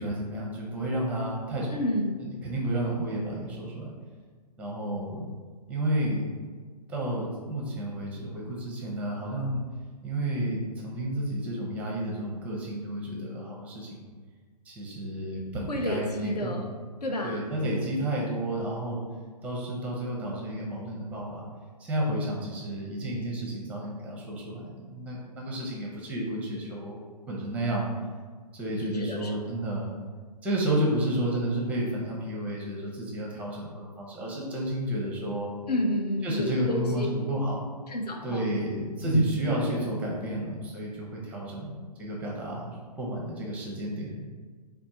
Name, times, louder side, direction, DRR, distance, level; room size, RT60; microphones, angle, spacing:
voice 1, 0.0-1.8 2.2-3.9 4.6-5.3 5.7-6.3 6.9-9.6 10.0-14.1 14.6-16.7 17.2-19.0 19.4-21.5 21.8-27.0 27.3-27.8 28.5-29.9 30.4-35.5 36.2-37.6 38.2-44.3, right 1 dB, 5° right, -3 dB, 0.6 m, -31 dB
voice 2, 1.7-2.2 4.9-5.0 15.7-16.7 17.0-17.5 28.9-29.4 35.7-37.1 37.9-38.5 39.0-39.2, left 1 dB, 70° left, 2 dB, 0.7 m, -29 dB
4.2 x 2.2 x 4.2 m, 1.5 s
figure-of-eight pair, 125°, 21 cm